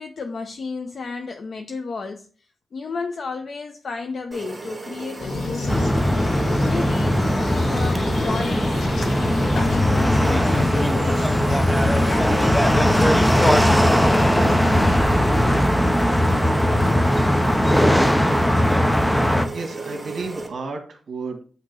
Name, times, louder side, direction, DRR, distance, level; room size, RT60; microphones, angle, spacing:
voice 1, 0.0-5.9 6.6-14.6, left 4 dB, 55° left, 0.6 m, -33 dB
sound 1, 4.3-20.5, right 4 dB, 10° right, 2.4 m, -34 dB
sound 2, 5.2-15.6, left 3 dB, 80° left, 1.4 m, -31 dB
sound 3, 5.7-19.5, equal, 5° left, 0.6 m, -19 dB
voice 2, 19.5-21.4, right 3 dB, 65° right, 1.8 m, -32 dB
8.7 x 2.9 x 6.1 m
wide cardioid pair, 150°, 0 cm